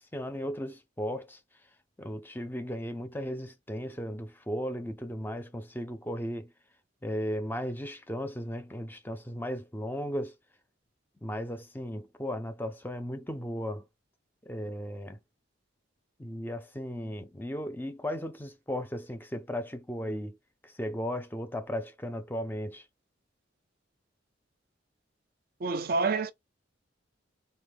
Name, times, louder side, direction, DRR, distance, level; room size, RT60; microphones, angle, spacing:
voice 1, 0.0-1.4 2.0-6.5 7.0-10.3 11.2-13.9 14.4-15.2 16.2-20.4 20.6-22.8, equal, 10° left, 0.5 m, -36 dB
voice 2, 25.6-26.3, right 4 dB, 50° right, 0.5 m, -27 dB
4.2 x 2.1 x 3.4 m
head